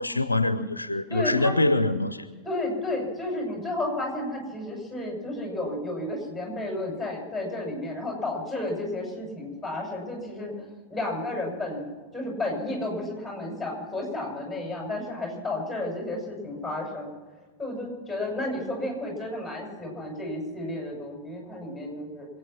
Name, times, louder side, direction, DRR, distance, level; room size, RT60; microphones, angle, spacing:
voice 1, 0.0-2.3, left 2 dB, 80° left, 0.7 m, -24 dB
voice 2, 1.1-1.5 2.4-10.5 10.9-17.1 17.6-22.3, left 2 dB, ahead, 6.6 m, -32 dB
26.5 x 9.0 x 5.9 m
figure-of-eight pair, 90°, 0 cm